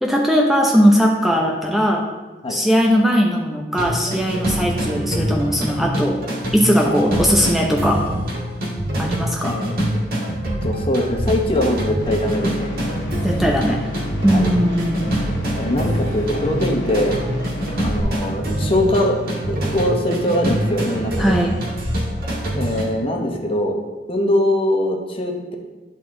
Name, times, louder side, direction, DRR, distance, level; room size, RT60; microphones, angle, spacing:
voice 1, 0.0-2.0 2.5-6.2 6.5-8.0 9.0-9.5 13.2-13.8 14.2-15.1 21.2-21.6, equal, ahead, -1 dB, 0.7 m, -18 dB
sound 1, 3.8-22.8, right 1 dB, 55° right, 1.9 m, -25 dB
voice 2, 9.3-10.0 10.6-12.7 14.3-14.5 15.6-17.2 17.8-19.2 19.5-21.4 22.5-23.8 24.1-25.5, left 1 dB, 30° left, 1 dB, 1.0 m, -22 dB
sound 2, 12.0-18.0, left 1 dB, 75° left, 1.6 m, -30 dB
11.0 x 4.1 x 3.8 m, 1.2 s
head